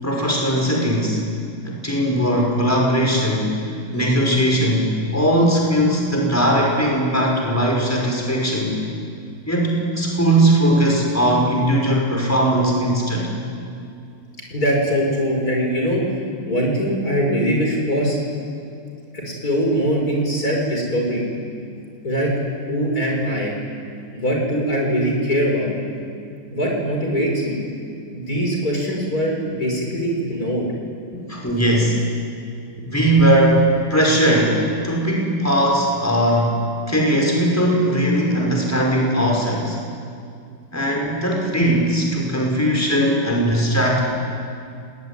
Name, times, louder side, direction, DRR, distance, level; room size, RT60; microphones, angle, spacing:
voice 1, 0.0-1.2 1.6-8.8 9.5-13.3 31.1-32.1 32.9-36.6 36.9-39.8 40.7-44.0, right 1 dB, 5° left, -2 dB, 5.4 m, -19 dB
voice 2, 14.5-16.1 16.5-18.2 19.1-21.2 22.0-22.3 22.7-23.5 24.1-25.7 26.5-27.6 28.1-30.7, equal, 45° left, -1 dB, 6.3 m, -22 dB
29.0 x 20.0 x 10.0 m, 2.4 s
omnidirectional pair, 2.3 m